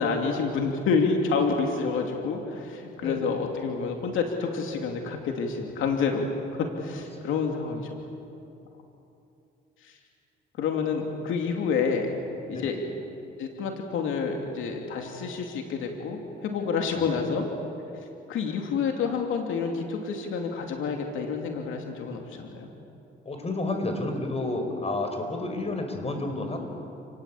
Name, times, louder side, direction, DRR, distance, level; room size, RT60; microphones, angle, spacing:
voice 1, 0.0-6.3 6.6-7.9 9.8-9.9 10.6-12.2 12.5-12.8 13.4-17.4 18.3-22.7, left 5 dB, 85° left, 2 dB, 2.8 m, -28 dB
voice 2, 3.0-3.3 7.2-7.3 12.5-12.8 16.9-17.3 23.2-26.6, left 2 dB, 30° left, 5 dB, 5.2 m, -31 dB
30.0 x 19.5 x 8.6 m, 2.8 s
cardioid pair, 90°, 20 cm